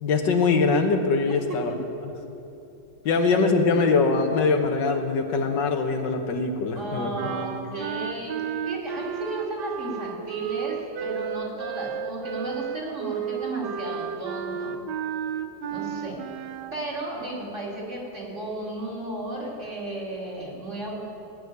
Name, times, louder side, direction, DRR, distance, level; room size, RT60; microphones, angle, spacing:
voice 1, 0.0-1.7 3.1-7.1, left 4 dB, 90° left, 5 dB, 1.7 m, -22 dB
voice 2, 6.7-8.4 8.6-14.7 15.7-16.2 16.7-21.0, right 2 dB, 40° right, -4 dB, 2.8 m, -34 dB
sound 1, 7.1-16.8, right 8 dB, 80° right, 1.2 m, -32 dB
15.5 x 6.2 x 9.4 m, 2.8 s
omnidirectional pair, 1.9 m